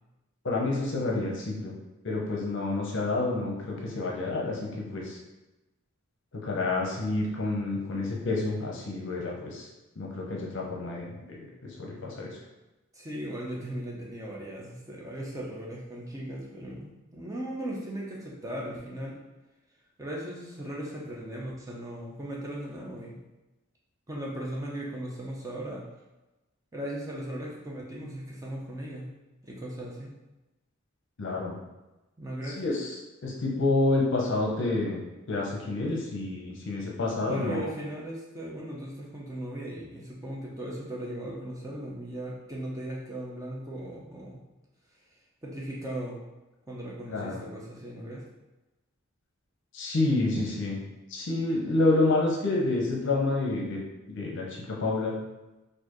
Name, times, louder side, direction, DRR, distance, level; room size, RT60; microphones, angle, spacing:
voice 1, 0.4-1.7 2.0-5.2 6.4-9.7 10.0-12.4 31.2-31.6 32.6-33.0 33.2-35.0 35.3-37.6 47.1-47.4 49.7-50.8 51.1-53.8 54.1-55.1, left 2 dB, 55° left, -2 dB, 0.7 m, -28 dB
voice 2, 12.9-19.2 20.0-23.2 24.1-25.8 26.7-29.1 29.4-30.1 32.2-32.6 36.5-36.6 37.2-44.4 45.4-46.2 46.7-48.2, right 1 dB, 15° right, -4 dB, 0.5 m, -37 dB
4.2 x 2.6 x 3.0 m, 1.0 s
head